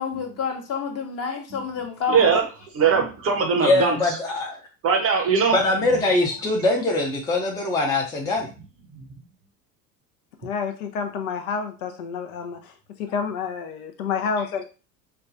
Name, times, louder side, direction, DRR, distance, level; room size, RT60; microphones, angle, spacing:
voice 1, 0.0-2.3, left 6 dB, 30° left, 3 dB, 1.0 m, -29 dB
voice 2, 2.1-2.5 2.7-4.2 4.8-5.6, right 5 dB, 30° right, 4 dB, 0.7 m, -20 dB
voice 3, 3.6-4.6 5.5-8.5, left 2 dB, 10° left, 1 dB, 0.6 m, -22 dB
voice 4, 10.4-12.6 13.0-14.6, left 6 dB, 60° left, 6 dB, 0.6 m, -29 dB
4.8 x 2.2 x 2.5 m, 0.33 s
figure-of-eight pair, 75°, 49 cm